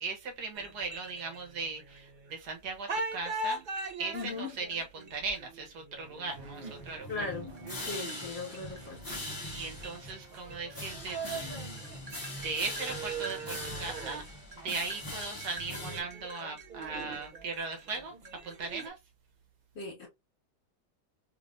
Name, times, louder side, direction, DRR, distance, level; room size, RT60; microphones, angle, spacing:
voice 1, 0.0-3.6 4.0-7.3 9.5-11.7 12.4-14.2 14.6-19.0, right 4 dB, 75° right, 1.6 m, -38 dB
sound 1, 0.5-2.5 2.9-18.9, right 3 dB, 50° right, 0.5 m, -42 dB
voice 2, 4.1-4.5 7.1-7.5 7.9-9.0 19.8-20.1, left 3 dB, 40° left, 2.0 m, -38 dB
sound 2, 6.3-16.0, left 1 dB, 15° left, 1.0 m, -42 dB
3.5 x 3.2 x 2.5 m
omnidirectional pair, 1.8 m